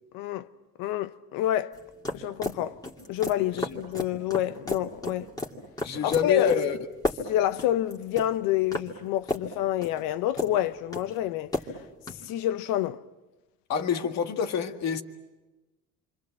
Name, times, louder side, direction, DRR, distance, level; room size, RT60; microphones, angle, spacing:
voice 1, 0.1-0.5 0.8-1.8 2.1-2.8 3.1-5.3 6.0-6.6 7.3-11.5 12.2-13.0, left 12 dB, 85° left, 0.9 m, -28 dB
sound 1, 1.7-12.3, left 1 dB, 10° left, 2.4 m, -34 dB
voice 2, 5.8-6.8 13.7-15.0, left 7 dB, 55° left, 1.9 m, -27 dB
28.0 x 25.5 x 7.6 m
cardioid pair, 140°, 33 cm